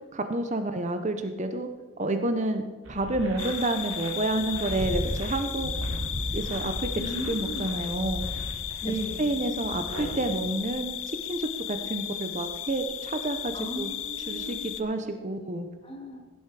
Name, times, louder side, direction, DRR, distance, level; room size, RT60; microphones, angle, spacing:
voice 1, 0.0-1.7 2.0-5.7 6.3-6.9 7.3-8.2 8.9-13.9 14.2-15.7, right 2 dB, 35° right, 8 dB, 0.7 m, -29 dB
sound 1, 2.8-10.2, equal, 85° right, 3.0 m, -36 dB
sound 2, 3.4-14.8, left 12 dB, 65° left, 0.7 m, -35 dB
voice 2, 6.9-7.7 8.8-9.3 13.5-14.7 15.8-16.3, right 1 dB, 25° left, 2 dB, 2.0 m, -36 dB
16.5 x 8.1 x 4.8 m, 1.4 s
head